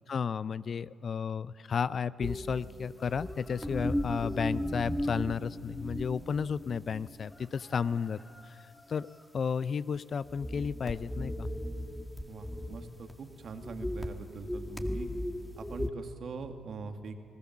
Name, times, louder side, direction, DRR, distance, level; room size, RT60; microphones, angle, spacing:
voice 1, 0.1-8.6 8.9-9.1 9.3-11.5, left 6 dB, 50° left, 18 dB, 0.5 m, -33 dB
sound 1, 2.2-7.4 7.8-8.0 9.9-10.0 10.2-13.1 13.4-15.9, equal, 5° left, 2.0 m, -36 dB
sound 2, 2.9-5.2 7.3-9.3, left 2 dB, 35° left, 5.7 m, -57 dB
voice 2, 12.3-15.1 15.6-17.2, right 4 dB, 55° right, 6 dB, 2.0 m, -43 dB
26.5 x 18.5 x 7.3 m, 2.3 s
hypercardioid pair, 50°, 0 cm